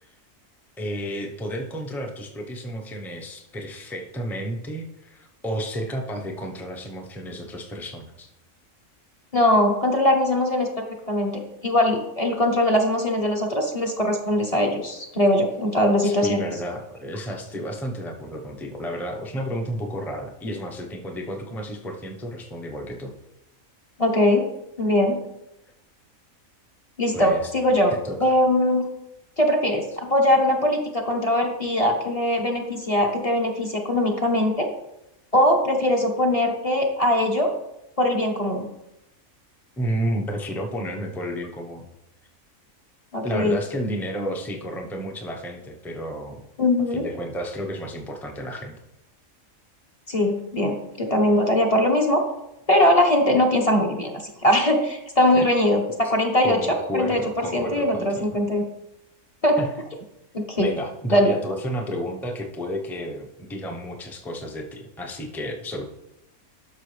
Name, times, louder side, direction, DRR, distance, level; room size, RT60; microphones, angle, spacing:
voice 1, 0.8-8.3 16.0-23.1 27.1-27.5 27.9-28.2 39.8-41.9 43.2-46.4 46.9-48.8 55.4-55.5 56.4-58.4 59.6-59.7 60.6-65.9, equal, ahead, 2 dB, 0.8 m, -31 dB
voice 2, 9.3-16.4 24.0-24.4 24.8-25.2 27.0-27.9 28.2-28.9 29.4-34.7 35.3-37.5 38.0-38.7 43.1-43.6 46.6-47.0 50.1-52.2 52.7-54.1 54.4-55.8 56.1-56.6 56.9-58.6 59.4-59.6 60.6-60.7 61.1-61.3, left 1 dB, 25° left, 1 dB, 1.2 m, -21 dB
12.0 x 6.2 x 3.3 m, 0.87 s
omnidirectional pair, 1.4 m